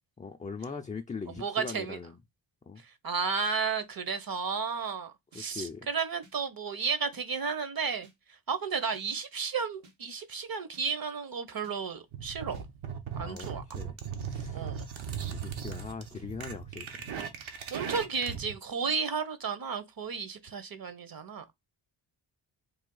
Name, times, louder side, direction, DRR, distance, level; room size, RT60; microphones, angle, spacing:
voice 1, 0.2-2.2 2.7-2.8 5.3-5.9 13.1-14.0 14.3-14.7 15.3-17.0, left 5 dB, 15° left, 0.4 m, -41 dB
voice 2, 1.4-2.0 3.0-8.1 8.5-12.6 13.2-13.6 14.5-14.8 17.4-21.4, right 5 dB, 45° right, 0.8 m, -33 dB
sound 1, 5.3-5.4 6.2-6.3 7.1-7.2 8.0-8.2 8.9-9.1 9.8-10.0 10.7-10.9 11.6-11.8 12.5-12.7 13.4-13.6 14.3-14.5 15.2-15.4 16.1-16.3 17.0-17.2 18.0-18.1 18.9-19.0, right 2 dB, 90° right, 1.5 m, -57 dB
sound 2, 12.1-18.5, right 7 dB, 70° right, 0.9 m, -38 dB
3.5 x 2.4 x 3.8 m
cardioid pair, 55°, 49 cm